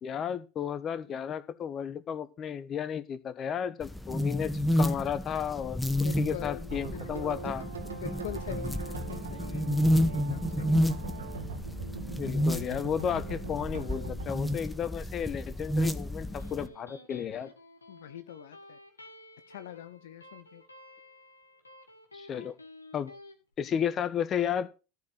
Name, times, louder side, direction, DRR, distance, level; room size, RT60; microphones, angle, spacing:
voice 1, 0.0-5.8 6.2-7.7 12.2-17.5 22.1-22.5 22.9-23.1 23.6-24.8, left 8 dB, 35° left, 15 dB, 1.1 m, -33 dB
sound 1, 3.8-16.7, equal, 5° left, 1.1 m, -30 dB
voice 2, 5.9-7.4 7.8-9.7 10.0-10.8 17.9-18.8 19.5-20.6, left 13 dB, 70° left, 12 dB, 0.6 m, -44 dB
sound 2, 6.7-14.8, right 4 dB, 80° right, 1.9 m, -41 dB
Electric guitar, 16.2-23.4, left 1 dB, 90° left, 1.8 m, -52 dB
13.5 x 4.6 x 6.7 m, 0.32 s
figure-of-eight pair, 80°, 0 cm